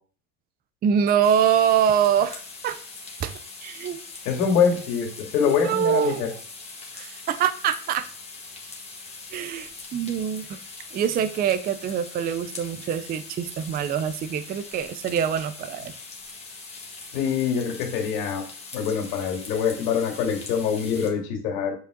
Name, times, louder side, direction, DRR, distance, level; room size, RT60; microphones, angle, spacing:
voice 1, 0.8-2.8 3.2-3.3 3.6-4.0 5.4-6.4 6.9-8.1 9.3-10.6 10.9-15.9, right 8 dB, 20° right, 12 dB, 0.4 m, -24 dB
sound 1, 1.2-21.1, left 4 dB, 15° left, 1.7 m, -42 dB
voice 2, 4.3-6.3 17.1-18.4 18.7-21.7, left 7 dB, 75° left, 2 dB, 2.5 m, -24 dB
8.2 x 4.9 x 3.7 m, 0.44 s
supercardioid pair, 120°, 45 cm